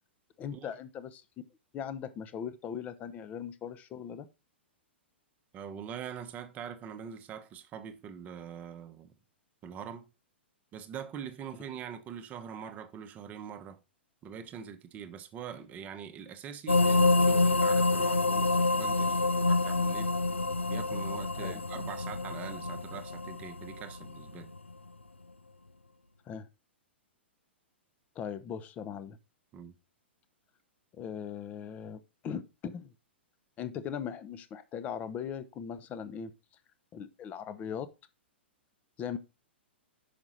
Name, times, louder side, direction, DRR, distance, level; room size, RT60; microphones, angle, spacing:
voice 1, 0.4-1.2 1.7-4.2 21.4-21.6 26.3-26.5 28.2-29.2 30.9-32.9 33.6-36.3 36.9-37.9 39.0-39.2, left 8 dB, 25° left, 0.7 m, -39 dB
voice 2, 5.5-9.1 9.6-10.1 10.7-13.8 14.2-20.1 20.7-24.5 29.5-29.7, right 8 dB, 25° right, 0.9 m, -43 dB
sound 1, 16.7-24.4, left 3 dB, 85° left, 0.5 m, -27 dB
6.0 x 5.1 x 4.2 m
figure-of-eight pair, 105°, 6 cm